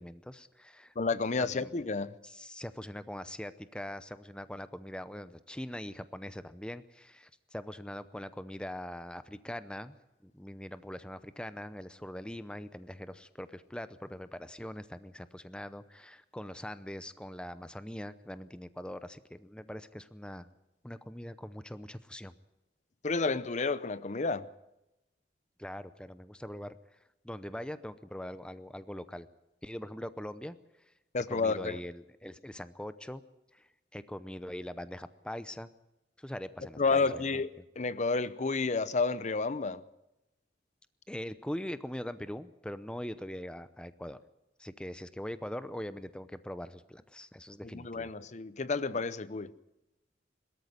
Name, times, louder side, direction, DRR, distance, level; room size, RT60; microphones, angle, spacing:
voice 1, 0.0-0.9 1.4-1.7 2.2-20.5 20.8-22.3 25.6-26.7 27.2-29.3 29.6-30.6 31.3-33.2 33.5-33.7 33.9-35.7 36.2-37.4 41.1-44.2 44.6-48.1, left 1 dB, 5° left, 0.7 m, -42 dB
voice 2, 1.0-2.1 23.0-24.4 31.1-31.8 36.8-39.8 47.7-49.5, left 4 dB, 40° left, 0.7 m, -30 dB
21.5 x 13.5 x 9.6 m
head